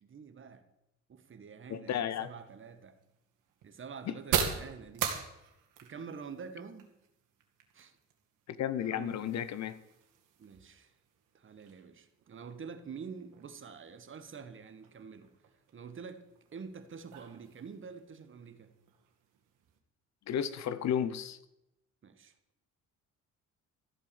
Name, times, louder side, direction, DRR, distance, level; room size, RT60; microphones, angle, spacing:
voice 1, 0.0-0.6 1.1-2.9 3.6-5.1 5.8-6.9 7.7-7.9 8.8-9.3 10.4-10.9 11.3-15.3 15.7-16.3 16.5-18.7 22.0-22.3, right 6 dB, 40° right, 10 dB, 1.6 m, -47 dB
voice 2, 1.7-2.3 4.1-4.2 8.5-9.8 20.3-21.4, left 9 dB, 60° left, 15 dB, 0.9 m, -33 dB
sound 1, 2.2-19.8, right 8 dB, 85° right, 2.3 m, -42 dB
14.0 x 8.3 x 7.1 m, 0.89 s
cardioid pair, 105°, 31 cm